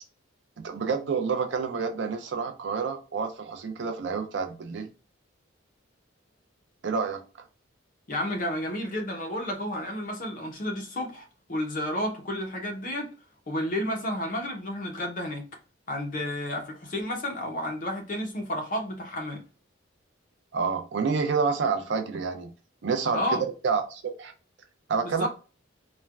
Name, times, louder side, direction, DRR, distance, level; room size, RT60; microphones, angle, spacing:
voice 1, 0.6-4.9 6.8-7.2 20.5-22.5 22.8-23.4 23.6-24.3 24.9-25.3, right 5 dB, 60° right, 0.4 m, -28 dB
voice 2, 8.1-13.1 13.5-15.5 15.9-19.4 23.1-23.4 25.0-25.3, left 1 dB, 40° left, 0.6 m, -31 dB
3.2 x 2.1 x 2.3 m
head